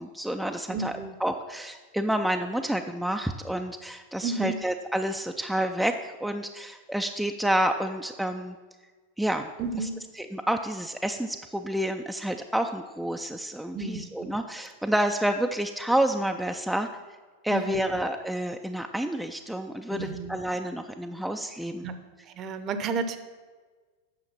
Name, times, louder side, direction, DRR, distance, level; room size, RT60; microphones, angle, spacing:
voice 1, 0.0-0.9 1.2-8.6 9.2-9.5 9.8-9.9 10.2-16.9 17.4-21.9, right 1 dB, ahead, 4 dB, 0.4 m, -29 dB
voice 2, 0.7-1.2 4.2-4.6 9.6-10.0 13.7-14.4 17.5-18.0 19.9-20.4 21.8-23.2, right 4 dB, 30° right, 11 dB, 0.7 m, -33 dB
8.8 x 6.5 x 5.7 m, 1.4 s
figure-of-eight pair, 90°, 0 cm